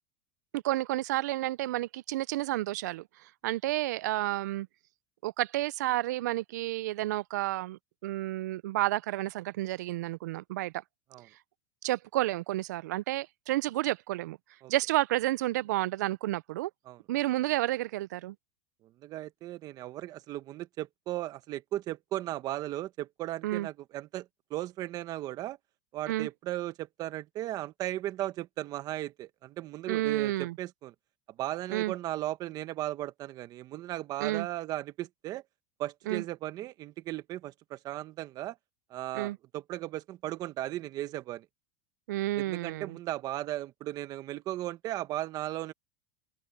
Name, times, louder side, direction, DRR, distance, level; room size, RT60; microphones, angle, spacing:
voice 1, 0.5-3.0 3.4-4.7 5.2-10.7 11.8-14.4 14.7-16.7 17.1-18.3 23.4-23.7 26.1-26.3 29.9-30.6 31.7-31.9 34.2-34.5 36.1-36.2 39.1-39.4 42.1-43.0, right 16 dB, 85° right, 0.4 m, -30 dB
voice 2, 18.8-25.6 25.9-30.9 31.4-35.4 35.8-38.6 38.9-41.5 42.4-45.7, right 14 dB, 45° right, 1.5 m, -36 dB
open air
supercardioid pair, 125°, 9 cm